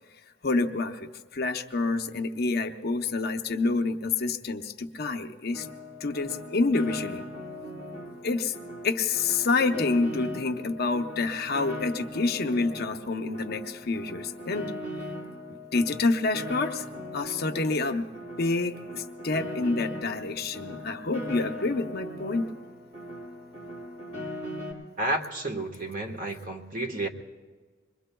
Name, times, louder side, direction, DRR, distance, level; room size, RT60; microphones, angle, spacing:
voice 1, 0.4-5.7 6.0-7.2 8.2-8.5 8.8-14.7 15.7-16.8 17.1-18.1 18.4-22.4, left 3 dB, 55° left, 5 dB, 0.8 m, -28 dB
Piano, 5.5-24.7, left 1 dB, 70° right, 5.9 m, -39 dB
voice 2, 25.0-27.1, right 1 dB, 45° right, 2 dB, 1.4 m, -31 dB
26.0 x 22.5 x 2.3 m, 1.4 s
head